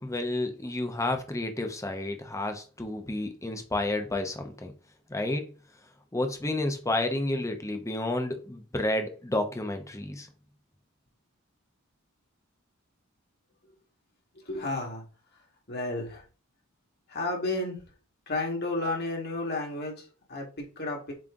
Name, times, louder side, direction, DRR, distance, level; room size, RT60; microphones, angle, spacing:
voice 1, 0.0-4.7 5.1-5.5 6.1-10.3, left 2 dB, 15° left, 0.9 m, -30 dB
voice 2, 14.3-15.0 15.7-16.2 17.1-17.8 18.3-21.1, left 2 dB, 50° left, 2.0 m, -32 dB
7.7 x 3.2 x 3.8 m
head